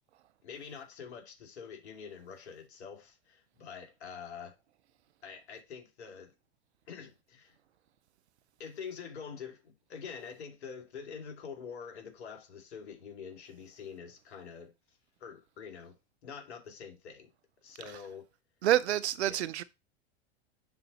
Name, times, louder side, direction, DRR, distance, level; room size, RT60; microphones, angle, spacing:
voice 1, 0.4-4.5 5.2-6.3 6.9-7.6 8.6-14.7 15.2-15.9 16.2-17.3 17.6-18.2 19.2-19.4, left 6 dB, 80° left, 2.9 m, -45 dB
voice 2, 18.6-19.6, right 13 dB, 90° right, 0.7 m, -27 dB
6.0 x 4.1 x 5.5 m
hypercardioid pair, 110°, 32 cm